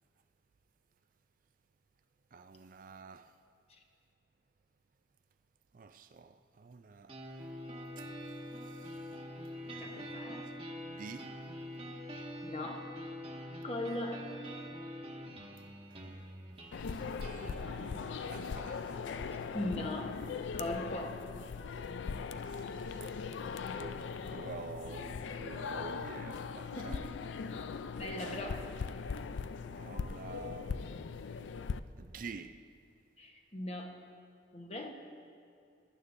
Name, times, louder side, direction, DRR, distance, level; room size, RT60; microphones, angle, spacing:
voice 1, 2.3-3.4 5.7-7.5 8.0-9.2 9.6-10.3 10.8-11.4 15.6-16.3 16.7-17.1 17.4-19.5 22.3-23.3 23.6-27.1 28.0-28.5 29.7-30.9 32.0-32.6, right 4 dB, 50° right, 0.4 m, -49 dB
sound 1, 7.1-21.1, equal, 30° right, 1.3 m, -46 dB
voice 2, 9.8-10.4 12.1-12.9 13.6-14.5 19.5-20.2 20.5-21.4 26.7-27.1 28.0-28.7 33.2-34.1 34.5-34.9, left 1 dB, 35° left, 1.1 m, -40 dB
sound 2, 16.7-31.8, left 5 dB, 80° left, 0.4 m, -40 dB
22.0 x 11.0 x 2.6 m
head